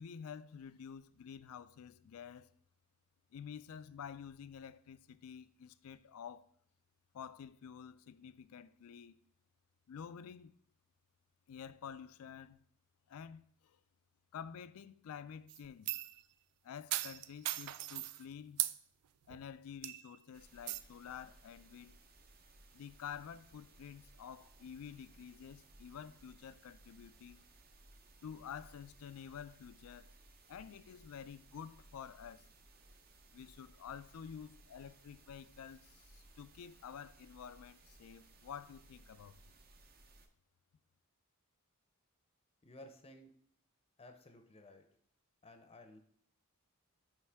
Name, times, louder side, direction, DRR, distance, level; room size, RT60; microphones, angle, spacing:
voice 1, 0.0-2.5 3.3-6.5 7.1-9.2 9.9-10.5 11.5-12.6 13.1-13.8 14.3-16.0 16.6-18.7 19.3-22.0 22.7-27.4 28.2-30.1 30.5-32.5 33.3-39.4, left 7 dB, 70° left, 0.4 m, -50 dB
sound 1, 15.5-16.2 16.9-18.2 18.6-18.8 19.3-19.4 19.8-20.2 20.7-20.8, right 15 dB, 85° right, 0.3 m, -38 dB
sound 2, 20.3-40.3, right 2 dB, 45° right, 0.7 m, -62 dB
voice 2, 42.6-43.3 44.0-44.8 45.4-46.0, left 1 dB, 25° left, 0.6 m, -55 dB
9.2 x 3.2 x 3.4 m
head